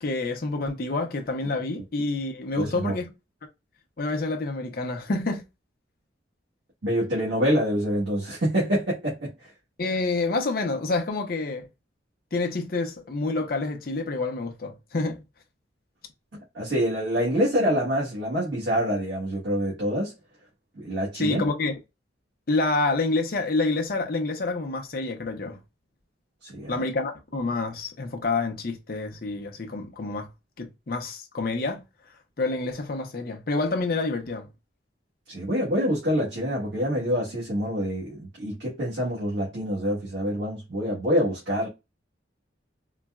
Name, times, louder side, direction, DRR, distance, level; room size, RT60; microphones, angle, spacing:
voice 1, 0.0-3.1 4.0-5.5 9.8-11.6 12.3-15.2 21.1-21.8 22.5-25.6 26.7-30.3 30.6-31.8 32.4-34.5, left 3 dB, 50° left, 0.6 m, -28 dB
voice 2, 2.5-2.9 6.8-9.5 16.5-20.1 20.8-21.4 26.4-26.9 35.3-41.7, equal, 70° right, 1.3 m, -26 dB
3.9 x 2.1 x 2.3 m
head